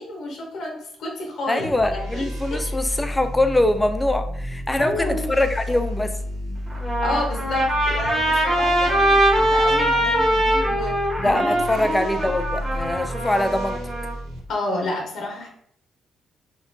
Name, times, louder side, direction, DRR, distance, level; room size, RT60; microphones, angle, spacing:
voice 1, 0.0-3.0 4.8-5.3 7.0-12.3 14.5-15.5, left 1 dB, 70° left, 1 dB, 0.6 m, -30 dB
voice 2, 1.5-6.2 11.2-13.8, left 1 dB, 15° left, 9 dB, 0.3 m, -23 dB
sound 1, 1.6-14.4, left 1 dB, 85° right, 0.5 m, -31 dB
Trumpet, 6.7-14.1, right 1 dB, 25° right, 1.0 m, -22 dB
2.8 x 2.2 x 2.4 m, 0.64 s
supercardioid pair, 60°, 0 cm